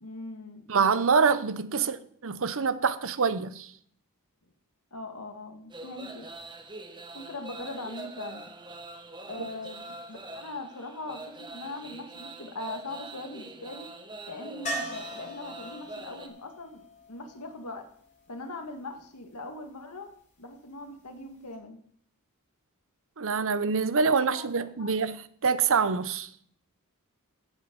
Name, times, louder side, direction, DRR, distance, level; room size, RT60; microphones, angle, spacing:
voice 1, 0.0-0.7 1.8-2.1 4.9-6.3 7.1-8.5 9.3-13.9 14.3-17.9 18.3-20.1 20.4-21.8 24.3-24.9, left 2 dB, 85° left, 2.0 m, -41 dB
voice 2, 0.7-2.0 2.2-3.7 9.4-9.5 23.2-26.3, right 5 dB, 65° right, 0.8 m, -25 dB
sound 1, 5.7-16.3, right 2 dB, 20° right, 1.3 m, -44 dB
sound 2, 14.7-18.5 21.2-21.3 21.5-21.6, right 1 dB, 35° left, 4.7 m, -40 dB
15.5 x 7.4 x 5.3 m
head